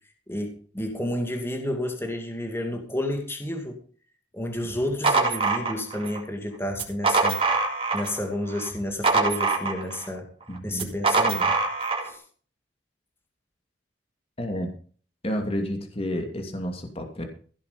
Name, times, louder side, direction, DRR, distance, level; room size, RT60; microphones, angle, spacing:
voice 1, 0.3-3.8 4.3-7.4 7.9-10.3 10.6-11.6 12.0-12.2, left 1 dB, 15° left, 3 dB, 2.3 m, -30 dB
sound 1, 4.7-6.2 6.7-8.2 8.5-10.1 10.7-12.1, right 4 dB, 30° right, 3.7 m, -24 dB
voice 2, 10.5-11.0 14.4-14.7 15.2-17.2, equal, 30° left, 4 dB, 2.6 m, -31 dB
16.5 x 8.2 x 5.2 m, 0.42 s
head